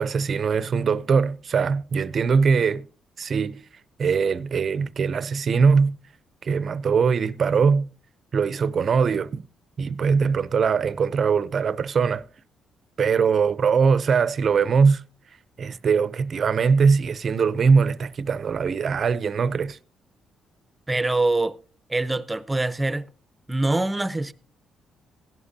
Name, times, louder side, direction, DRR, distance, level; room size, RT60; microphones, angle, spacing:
voice 1, 0.0-2.9 3.2-3.6 4.0-6.0 6.4-7.9 8.3-9.4 9.8-12.3 13.0-15.0 15.6-19.8, right 5 dB, 50° right, 0.6 m, -21 dB
voice 2, 20.9-21.6 21.9-23.1 23.5-24.3, right 2 dB, 15° right, 0.8 m, -24 dB
16.5 x 11.5 x 2.8 m
cardioid pair, 90°, 0 cm